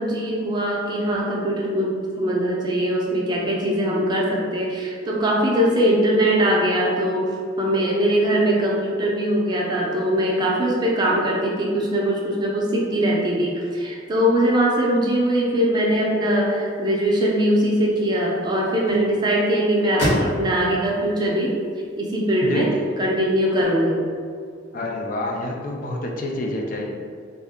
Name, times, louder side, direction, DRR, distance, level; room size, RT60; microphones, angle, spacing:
voice 1, 0.0-21.6 22.0-22.7 23.0-24.0, right 1 dB, 20° right, -4 dB, 0.5 m, -21 dB
sound 1, 16.4-22.6, equal, 65° left, 0.7 m, -32 dB
voice 2, 22.4-22.8 24.7-27.0, left 1 dB, 45° left, 0 dB, 0.3 m, -28 dB
3.5 x 2.1 x 3.5 m, 2.2 s
head